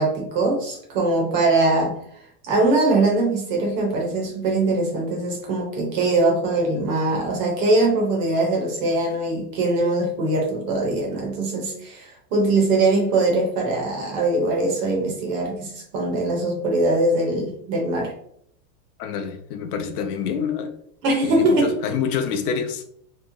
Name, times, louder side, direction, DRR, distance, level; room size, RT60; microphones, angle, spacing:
voice 1, 0.0-1.9 2.4-18.1 21.0-21.7, right 2 dB, 25° right, 0 dB, 0.4 m, -22 dB
voice 2, 19.0-20.7 21.2-22.8, left 6 dB, 70° left, 6 dB, 0.6 m, -27 dB
3.0 x 2.0 x 2.4 m, 0.67 s
supercardioid pair, 140°, 48 cm